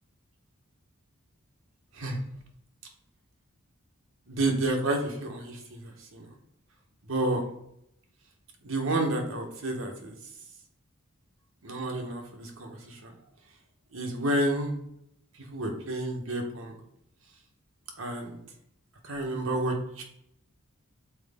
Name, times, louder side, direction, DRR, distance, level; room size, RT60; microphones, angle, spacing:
voice 1, 4.3-5.6 5.8-6.3 7.1-7.4 8.6-10.1 11.6-12.8 13.0-13.1 13.9-14.8 15.5-16.7 18.0-18.4 19.1-20.0, right 1 dB, 75° right, 2 dB, 1.1 m, -30 dB
6.1 x 4.3 x 3.6 m, 0.75 s
head